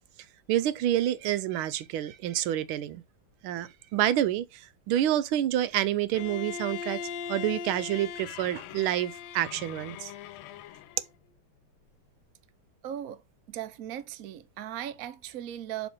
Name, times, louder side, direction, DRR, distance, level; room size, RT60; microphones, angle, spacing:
voice 1, 0.5-3.0 3.4-7.0 7.3-10.1, right 12 dB, 85° right, 1.5 m, -28 dB
Bowed string instrument, 6.1-11.1, left 7 dB, 85° left, 1.5 m, -39 dB
voice 2, 12.8-13.2 13.5-15.9, right 11 dB, 65° right, 0.9 m, -38 dB
7.0 x 3.7 x 4.3 m
omnidirectional pair, 2.3 m